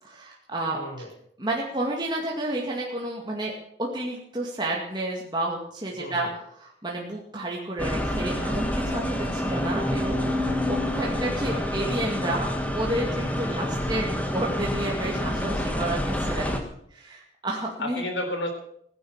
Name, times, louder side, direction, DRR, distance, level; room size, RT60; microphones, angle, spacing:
voice 1, 0.0-1.1 1.4-3.5 3.8-16.5 16.9-18.0, right 1 dB, 25° right, -2 dB, 2.2 m, -31 dB
voice 2, 0.7-1.1 5.9-6.3 11.5-12.0 17.8-18.5, left 1 dB, 85° left, 5 dB, 3.9 m, -33 dB
sound 1, 7.8-16.6, left 1 dB, 10° left, 1.6 m, -28 dB
16.0 x 10.5 x 7.3 m, 0.69 s
head